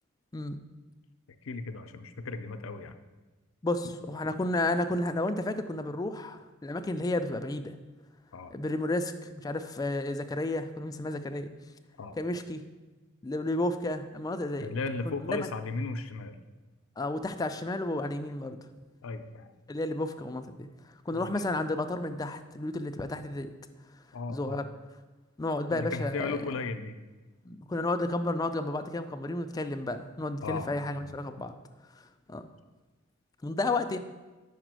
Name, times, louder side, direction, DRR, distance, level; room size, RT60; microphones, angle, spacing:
voice 1, 1.4-3.0 3.8-3.9 8.3-8.5 12.0-12.2 14.6-16.4 19.0-19.5 21.1-21.3 24.1-24.6 25.7-26.9 30.4-30.7 31.0-31.2, left 3 dB, 70° left, 9 dB, 0.5 m, -36 dB
voice 2, 3.6-7.8 8.5-11.5 12.2-12.6 13.2-14.7 15.1-15.4 17.0-18.6 19.7-20.7 21.1-23.5 24.3-24.6 25.4-26.5 27.5-31.6 32.0-32.5 33.4-34.0, left 2 dB, 20° left, 8 dB, 0.3 m, -32 dB
5.3 x 5.0 x 6.1 m, 1.2 s
head